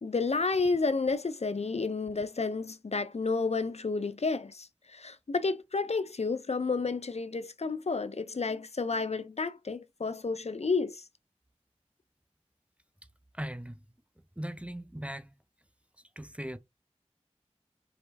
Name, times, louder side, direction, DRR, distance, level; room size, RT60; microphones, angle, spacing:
voice 1, 0.0-4.7 4.9-11.0, left 4 dB, 65° left, 0.5 m, -31 dB
voice 2, 13.3-13.9 14.4-15.4 16.2-16.6, right 1 dB, 10° right, 0.6 m, -39 dB
4.9 x 3.0 x 3.3 m
wide cardioid pair, 40°, 12 cm